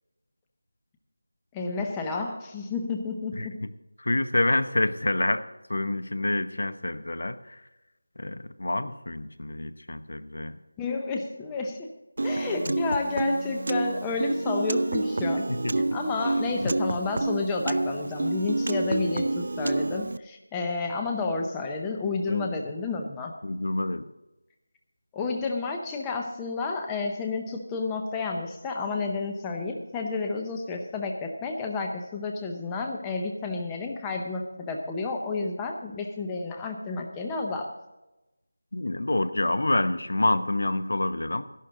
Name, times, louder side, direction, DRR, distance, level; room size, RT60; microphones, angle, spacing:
voice 1, 1.5-3.6 10.8-11.9 12.2-15.5 15.9-23.3 25.1-37.7, left 3 dB, 10° left, 2 dB, 0.6 m, -31 dB
voice 2, 3.3-3.7 4.0-5.4 5.7-7.6 8.2-10.6 15.5-15.8 16.6-16.7 22.3-22.5 23.4-24.1 38.7-41.4, left 2 dB, 65° left, 12 dB, 0.9 m, -27 dB
Piano, 12.2-20.2, right 2 dB, 50° right, 0.4 m, -28 dB
14.0 x 11.5 x 3.8 m, 1.0 s
figure-of-eight pair, 175°, 0 cm